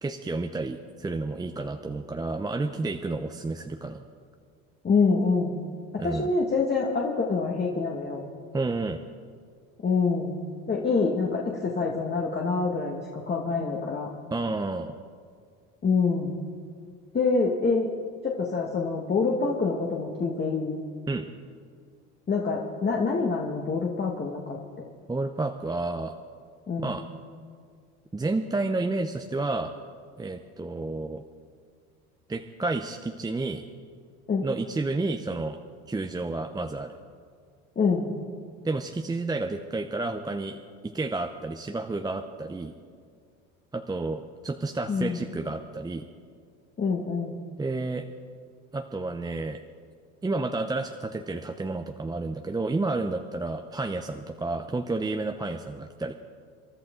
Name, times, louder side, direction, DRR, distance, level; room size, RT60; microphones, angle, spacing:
voice 1, 0.0-4.0 6.0-6.3 8.5-9.0 14.3-14.9 21.1-21.3 25.1-26.1 26.8-27.0 28.1-29.7 30.2-31.2 32.3-33.6 34.4-35.6 35.9-36.9 38.6-42.7 43.7-46.1 47.6-48.1 48.7-49.6 50.2-56.1, right 3 dB, 10° right, 6 dB, 0.7 m, -30 dB
voice 2, 4.8-5.6 5.9-8.2 9.8-10.4 10.7-14.1 15.8-16.4 17.1-17.9 18.2-20.8 22.3-24.6 26.7-27.0 34.3-34.5 37.7-38.1 44.9-45.3 46.8-47.4, left 4 dB, 30° left, -2 dB, 1.7 m, -26 dB
27.5 x 11.5 x 3.8 m, 2.1 s
supercardioid pair, 90°, 32 cm